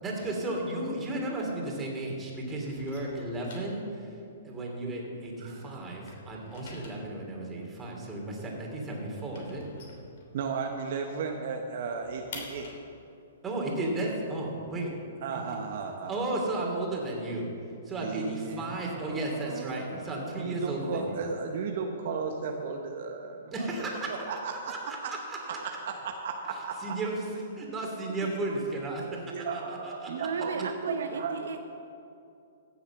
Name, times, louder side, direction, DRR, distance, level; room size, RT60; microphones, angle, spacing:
voice 1, 0.0-4.2 4.4-9.6 13.4-14.9 15.3-15.6 16.1-17.5 17.8-21.2 23.5-24.1 24.7-25.6 26.5-30.3, right 2 dB, 20° right, -1 dB, 3.0 m, -34 dB
sound 1, 0.6-2.0 2.3-5.5 5.8-10.8 11.1-11.2 11.5-15.3, left 3 dB, 60° left, 3.1 m, -49 dB
voice 2, 10.3-12.7 15.2-16.1 18.0-18.7 19.1-20.1 20.3-23.7 24.1-24.7 25.0-25.1 25.4-27.0 29.1-31.4, right 5 dB, 60° right, 3 dB, 1.0 m, -35 dB
voice 3, 30.2-31.6, right 5 dB, 75° right, 7 dB, 0.7 m, -34 dB
16.0 x 7.1 x 6.1 m, 2.6 s
hypercardioid pair, 125°, 0 cm